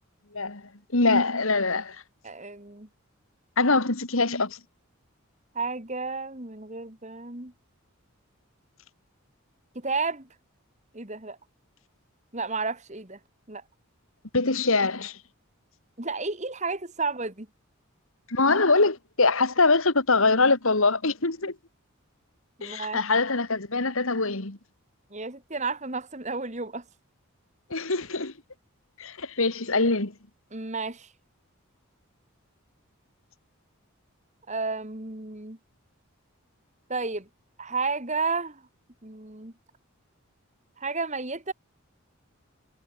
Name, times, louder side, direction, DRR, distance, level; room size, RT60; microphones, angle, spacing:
voice 1, 0.9-2.0 3.6-4.6 14.3-15.2 18.3-21.5 22.6-24.6 27.7-28.3 29.0-30.1, left 3 dB, 65° left, 2.2 m, -23 dB
voice 2, 2.2-2.9 5.5-7.5 9.8-10.3 10.9-11.4 12.3-13.2 13.5-13.6 16.0-17.5 21.4-21.5 22.6-23.0 25.1-26.8 30.5-31.1 34.5-35.6 36.9-37.3 37.6-38.6 39.0-39.5 40.8-41.5, right 4 dB, 30° right, 2.2 m, -32 dB
head